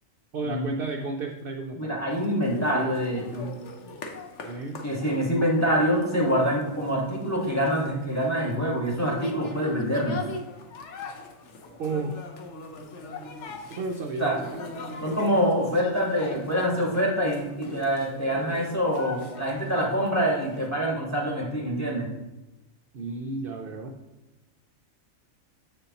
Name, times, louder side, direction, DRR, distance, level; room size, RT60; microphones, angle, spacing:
voice 1, 0.3-2.0 4.4-4.8 11.8-12.2 13.7-14.6 22.9-24.0, right 3 dB, 60° right, 4 dB, 0.6 m, -32 dB
voice 2, 1.7-3.5 4.8-10.2 14.2-14.4 15.0-22.1, equal, 10° left, -3 dB, 1.5 m, -25 dB
sound 1, 2.1-20.7, left 3 dB, 60° left, 1.1 m, -41 dB
7.6 x 6.8 x 2.9 m, 1.0 s
omnidirectional pair, 1.4 m